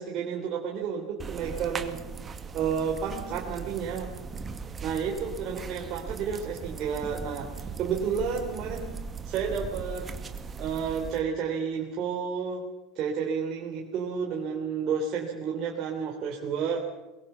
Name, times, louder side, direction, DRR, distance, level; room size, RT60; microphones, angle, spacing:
voice 1, 0.0-2.0 2.5-4.1 4.8-8.9 9.2-10.1 10.6-12.6 13.0-16.9, right 6 dB, 45° right, 0 dB, 3.4 m, -31 dB
sound 1, 1.2-11.2, right 5 dB, 25° right, 2.2 m, -39 dB
23.0 x 22.5 x 6.9 m, 1.1 s
figure-of-eight pair, 75°, 0 cm